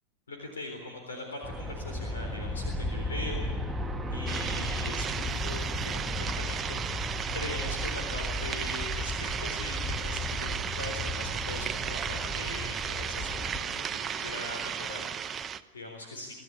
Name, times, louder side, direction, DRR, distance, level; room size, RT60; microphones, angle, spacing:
voice 1, 0.3-3.5 4.1-16.3, left 2 dB, 70° left, 3 dB, 3.9 m, -41 dB
Aircraft, 1.4-13.6, left 1 dB, 5° right, 1.6 m, -35 dB
sound 1, 4.3-15.6, right 7 dB, 20° right, 0.9 m, -35 dB
25.0 x 15.5 x 9.5 m, 1.4 s
figure-of-eight pair, 90°, 0 cm